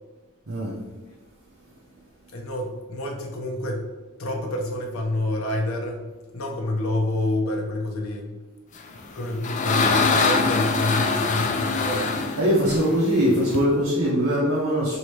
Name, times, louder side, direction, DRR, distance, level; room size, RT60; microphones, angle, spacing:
voice 1, 2.3-3.9 4.2-6.1 6.3-8.4 9.1-12.1, left 1 dB, 75° left, 1 dB, 0.7 m, -28 dB
sound 1, 9.0-13.6, left 4 dB, 35° left, 0.3 m, -24 dB
voice 2, 12.4-15.0, equal, 70° right, -6 dB, 0.8 m, -21 dB
3.1 x 2.8 x 4.5 m, 1.2 s
head